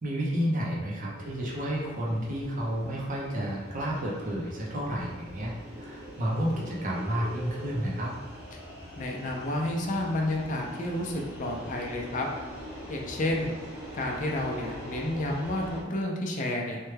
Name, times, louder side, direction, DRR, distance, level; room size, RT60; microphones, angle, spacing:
voice 1, 0.0-8.1, equal, 40° right, -4 dB, 0.6 m, -31 dB
sound 1, 1.1-15.8, equal, 5° right, 1.1 m, -43 dB
voice 2, 9.0-11.1 11.4-12.3 12.9-13.6 13.9-16.8, left 1 dB, 40° left, -1 dB, 0.5 m, -30 dB
3.2 x 2.2 x 3.2 m, 1.4 s
head